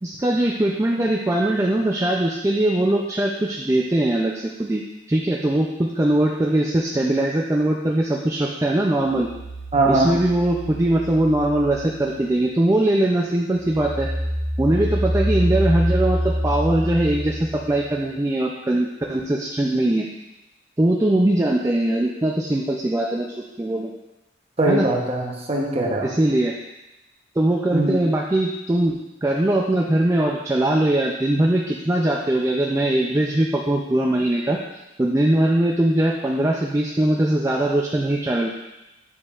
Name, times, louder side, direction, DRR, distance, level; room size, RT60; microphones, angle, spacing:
voice 1, 0.0-4.8 5.1-9.3 9.9-14.1 14.6-20.1 20.8-23.9 24.6-24.9 26.0-26.6 27.4-34.6 35.0-38.5, right 1 dB, 15° right, -1 dB, 0.3 m, -21 dB
sound 1, 9.0-12.9 13.3-17.8, equal, 55° right, 1.4 m, -27 dB
voice 2, 9.7-10.1 24.6-26.1 27.7-28.0, right 2 dB, 30° right, 0 dB, 0.9 m, -21 dB
8.2 x 5.2 x 2.4 m, 0.97 s
head